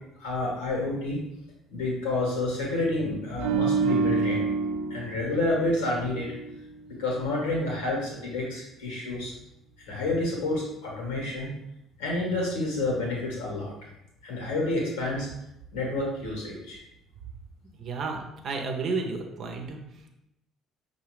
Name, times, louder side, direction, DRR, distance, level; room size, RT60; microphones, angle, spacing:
voice 1, 0.2-1.2 1.7-4.4 4.9-6.3 6.9-9.3 9.9-11.5 12.0-13.7 14.2-15.3 15.7-16.8, left 2 dB, 75° left, -2 dB, 1.4 m, -29 dB
sound 1, 3.4-6.7 7.0-7.2, right 4 dB, 70° right, 0.3 m, -28 dB
voice 2, 17.8-19.8, right 4 dB, 50° right, 2 dB, 0.7 m, -32 dB
5.6 x 2.7 x 3.2 m, 0.85 s
figure-of-eight pair, 50°, 0 cm